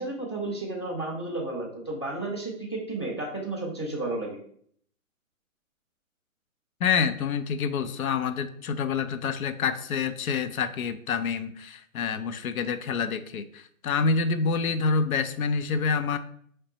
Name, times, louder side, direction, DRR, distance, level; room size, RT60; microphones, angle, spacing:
voice 1, 0.0-4.4, right 2 dB, 20° left, -3 dB, 0.4 m, -32 dB
voice 2, 6.8-16.2, left 5 dB, 85° left, 12 dB, 0.6 m, -27 dB
5.0 x 3.2 x 2.9 m, 0.63 s
hypercardioid pair, 165°, 42 cm